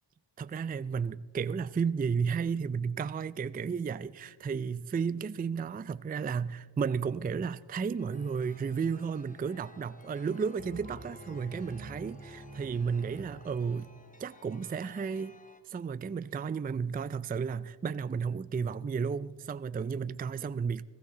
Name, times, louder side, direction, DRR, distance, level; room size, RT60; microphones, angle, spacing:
voice 1, 0.4-13.9 14.2-15.3 15.7-20.8, right 6 dB, 20° right, 0.3 m, -33 dB
Chime, 8.0-15.6, left 2 dB, 20° left, 1.1 m, -56 dB
sound 1, 10.6-14.2, right 2 dB, 45° right, 3.5 m, -47 dB
21.0 x 15.0 x 3.8 m
cardioid pair, 65°, 44 cm